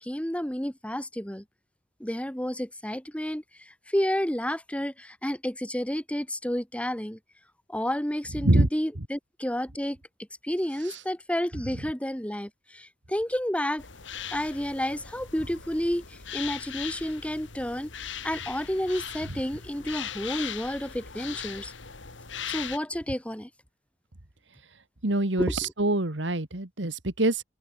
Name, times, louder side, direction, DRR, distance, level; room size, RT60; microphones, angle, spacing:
voice 1, 0.0-1.4 2.0-7.2 7.7-10.0 10.4-13.8 14.3-17.9 18.2-21.7 22.5-23.5 25.4-25.5, equal, 5° left, 2.0 m, -30 dB
sound 1, 13.8-22.8, left 8 dB, 75° left, 2.6 m, -39 dB
voice 2, 25.0-27.4, right 1 dB, 70° right, 2.2 m, -25 dB
head